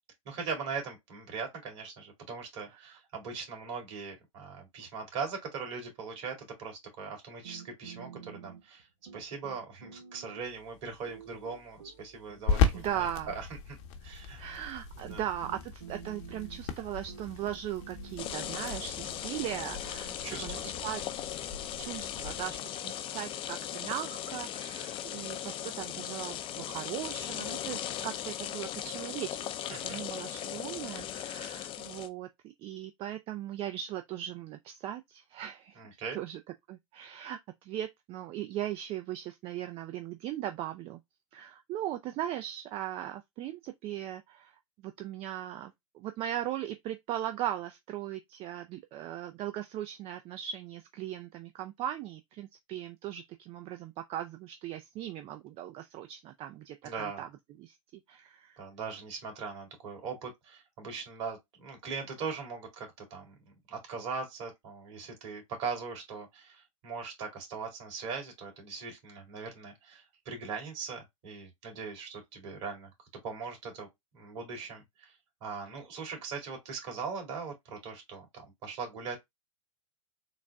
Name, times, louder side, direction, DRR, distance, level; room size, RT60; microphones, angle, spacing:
voice 1, 0.3-8.9 9.1-13.8 14.0-14.4 15.0-15.2 20.0-20.7 29.7-30.0 35.8-36.2 56.8-57.2 58.6-63.4 63.7-72.9 73.2-73.9 74.1-75.1 75.4-79.2, right 5 dB, 55° right, 2.4 m, -40 dB
sound 1, 7.4-8.8 9.1-10.7 11.1-13.5 14.5-14.6 15.0-22.6, right 7 dB, 90° right, 1.1 m, -51 dB
sound 2, 10.4-22.6, left 5 dB, 55° left, 0.9 m, -37 dB
voice 2, 12.7-13.3 14.4-21.2 21.8-35.8 36.1-36.4 36.7-41.0 41.3-57.3 57.6-58.6, right 12 dB, 35° right, 0.4 m, -39 dB
sound 3, 18.2-32.1, left 11 dB, 30° left, 0.5 m, -38 dB
3.9 x 2.2 x 3.4 m
hypercardioid pair, 110°, 17 cm